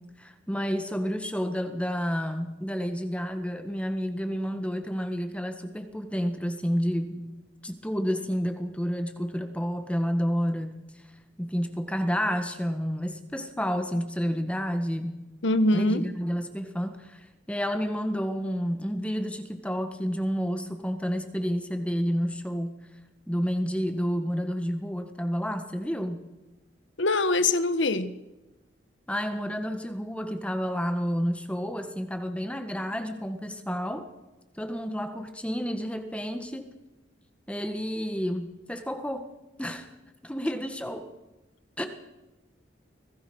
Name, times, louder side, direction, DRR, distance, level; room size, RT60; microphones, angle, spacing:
voice 1, 0.2-10.7 11.4-15.2 15.7-22.7 23.3-26.2 29.1-34.1 34.5-36.7 37.5-39.3 39.6-39.9 40.2-41.1 41.8-41.9, equal, 5° left, 1.7 m, -30 dB
voice 2, 15.4-16.1 27.0-28.1, left 2 dB, 80° left, 1.4 m, -23 dB
25.0 x 17.5 x 6.4 m
head